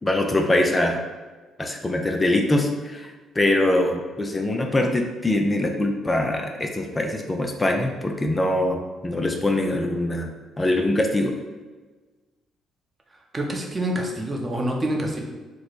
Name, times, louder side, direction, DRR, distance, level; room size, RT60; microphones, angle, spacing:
voice 1, 0.0-1.0 1.6-11.3, left 1 dB, 20° left, 3 dB, 0.5 m, -23 dB
voice 2, 13.3-15.2, right 1 dB, 30° right, 0 dB, 0.8 m, -26 dB
3.0 x 2.1 x 4.2 m, 1.3 s
hypercardioid pair, 55°, 0 cm